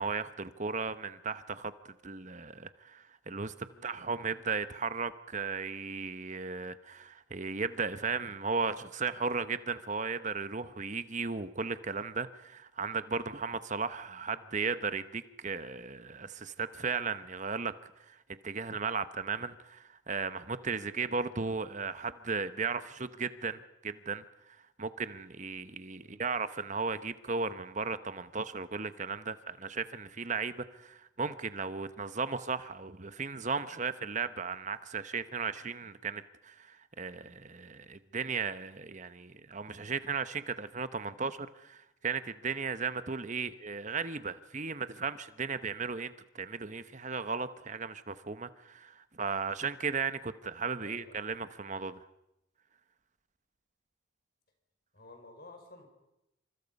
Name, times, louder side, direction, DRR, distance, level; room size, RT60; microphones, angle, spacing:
voice 1, 0.0-1.7 2.0-17.7 18.0-18.2 18.4-52.0, right 5 dB, 35° right, 1.0 m, -36 dB
voice 2, 50.8-51.2 54.9-55.9, left 2 dB, 50° left, 5.2 m, -54 dB
28.5 x 26.0 x 5.4 m
head